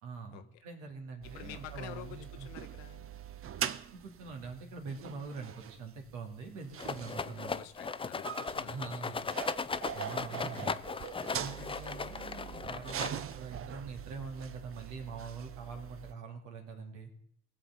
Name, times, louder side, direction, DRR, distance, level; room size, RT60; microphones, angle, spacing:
voice 1, 0.0-2.5 3.9-7.5 8.6-9.3 9.9-10.8 11.3-17.1, right 4 dB, 75° right, 3 dB, 2.4 m, -44 dB
sound 1, 1.2-16.1, right 9 dB, 45° right, 0.7 m, -43 dB
voice 2, 1.3-3.1 7.5-9.3 12.0-12.2, left 13 dB, 80° left, 10 dB, 0.9 m, -49 dB
Rattle, 6.8-13.5, left 5 dB, 15° left, 0.5 m, -37 dB
19.0 x 7.0 x 4.2 m, 0.69 s
hypercardioid pair, 60°, 31 cm